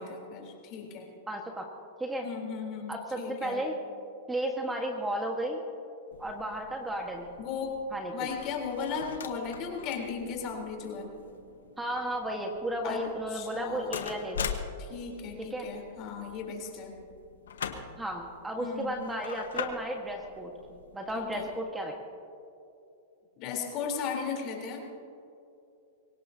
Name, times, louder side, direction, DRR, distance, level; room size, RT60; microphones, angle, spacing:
voice 1, 0.0-1.1 2.2-3.6 7.4-7.8 8.1-11.1 12.8-13.0 13.3-14.0 14.8-16.9 18.6-18.9 21.1-21.5 23.4-24.8, left 6 dB, 45° left, 1 dB, 3.7 m, -36 dB
voice 2, 1.3-1.7 2.0-2.3 2.9-3.8 4.3-5.6 6.2-7.4 7.9-8.3 11.8-14.5 15.4-15.7 18.0-20.5 20.9-21.9, right 1 dB, 10° right, 2 dB, 1.5 m, -34 dB
sound 1, 6.1-21.6, left 7 dB, 90° left, 1.3 m, -43 dB
23.5 x 18.0 x 2.8 m, 2.7 s
hypercardioid pair, 125°, 0 cm